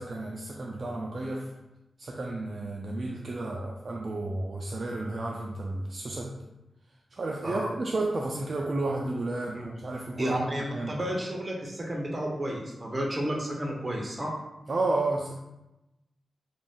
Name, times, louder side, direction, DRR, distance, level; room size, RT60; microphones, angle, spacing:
voice 1, 0.0-1.5 2.0-6.3 7.1-10.4 10.7-11.0 14.7-15.3, right 2 dB, 50° right, -1 dB, 0.3 m, -32 dB
voice 2, 10.2-14.3, right 1 dB, 30° right, -1 dB, 0.7 m, -31 dB
2.4 x 2.2 x 3.4 m, 0.95 s
cardioid pair, 70°, 0 cm